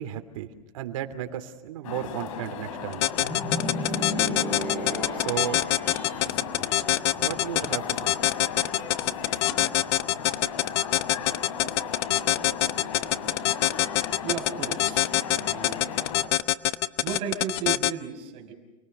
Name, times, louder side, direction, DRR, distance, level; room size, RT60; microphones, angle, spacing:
voice 1, 0.0-3.1 5.1-5.6 7.1-8.2, right 11 dB, 70° right, 7 dB, 3.0 m, -34 dB
sound 1, 1.8-16.3, left 7 dB, 75° left, 5.0 m, -36 dB
sound 2, 2.9-17.9, left 15 dB, 50° left, 0.9 m, -23 dB
sound 3, 3.2-6.2, left 1 dB, 15° left, 6.4 m, -33 dB
voice 2, 14.2-15.8 17.0-18.5, right 8 dB, 35° right, 4 dB, 5.6 m, -34 dB
29.5 x 21.0 x 6.8 m, 1.1 s
supercardioid pair, 165°, 17 cm